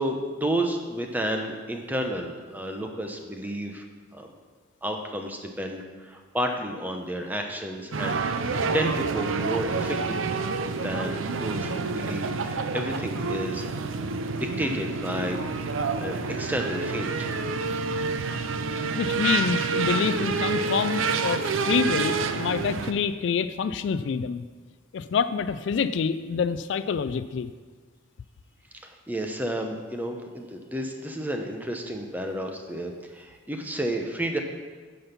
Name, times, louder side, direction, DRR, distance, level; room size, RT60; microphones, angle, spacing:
voice 1, 0.0-3.8 4.1-4.3 4.8-10.4 10.7-13.7 14.3-15.7 16.0-17.3 28.8-34.4, right 1 dB, 10° right, 3 dB, 0.7 m, -31 dB
sound 1, 7.9-22.9, right 4 dB, 75° right, 0.5 m, -28 dB
voice 2, 19.0-24.4 24.9-27.5, left 6 dB, 60° left, 13 dB, 0.3 m, -27 dB
9.9 x 5.3 x 5.8 m, 1.4 s
head